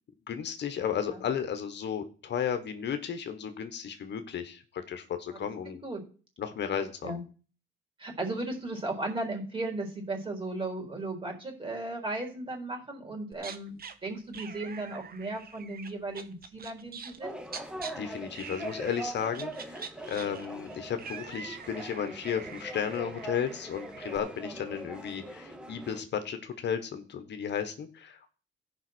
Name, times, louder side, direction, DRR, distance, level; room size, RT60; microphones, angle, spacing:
voice 1, 0.3-5.8 6.4-7.2 17.9-28.3, left 8 dB, 60° left, 9 dB, 1.3 m, -34 dB
voice 2, 5.7-6.0 7.0-7.2 8.0-17.4, right 2 dB, 25° right, 2 dB, 4.1 m, -36 dB
sound 1, 13.3-13.9 14.3-17.2 17.5-17.9 18.3-19.1 19.3-24.2, right 6 dB, 50° right, 1.1 m, -45 dB
sound 2, 17.2-26.0, right 1 dB, 5° right, 1.5 m, -42 dB
14.0 x 5.4 x 6.2 m, 0.38 s
cardioid pair, 90°, 20 cm